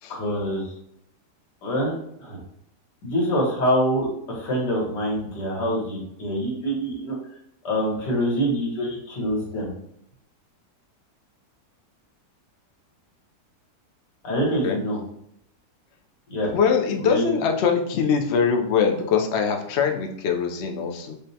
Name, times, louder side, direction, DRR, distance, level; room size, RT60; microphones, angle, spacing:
voice 1, 0.1-0.7 1.6-2.4 3.0-7.2 7.6-9.7 14.2-15.0 16.3-16.5 17.0-17.4, equal, 90° left, -2 dB, 1.8 m, -25 dB
voice 2, 16.4-21.1, left 6 dB, 75° left, 3 dB, 0.6 m, -23 dB
5.2 x 2.1 x 2.7 m, 0.73 s
omnidirectional pair, 1.8 m